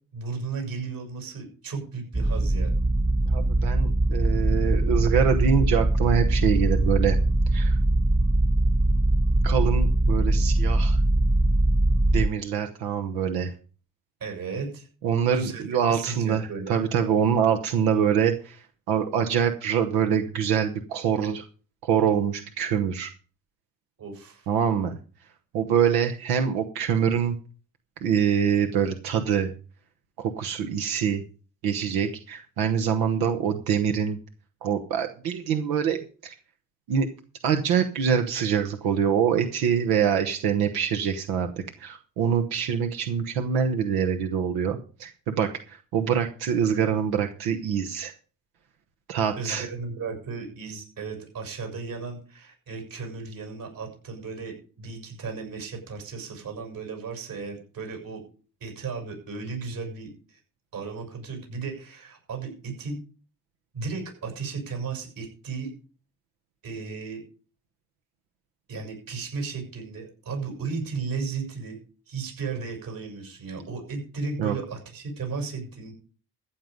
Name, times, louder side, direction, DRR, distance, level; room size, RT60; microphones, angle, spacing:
voice 1, 0.1-2.7 14.2-14.9 15.3-16.8 24.0-24.5 49.4-58.2 58.6-60.4 60.7-63.0 63.7-65.7 66.6-67.2 68.7-71.8 72.1-75.9, right 4 dB, 70° right, 2 dB, 7.3 m, -35 dB
sound 1, 2.1-12.3, right 1 dB, 10° right, 0.5 m, -22 dB
voice 2, 3.2-7.2 7.5-7.8 9.4-11.0 12.1-13.5 15.0-18.6 18.9-21.4 21.8-23.1 24.5-25.0 25.5-27.3 28.0-29.5 30.2-31.2 31.6-34.2 34.6-36.3 36.9-37.1 37.4-41.5 41.8-48.1 49.1-49.7 74.4-74.5, right 7 dB, 90° right, 6 dB, 1.2 m, -25 dB
14.5 x 8.2 x 5.3 m, 0.38 s
supercardioid pair, 50°, 36 cm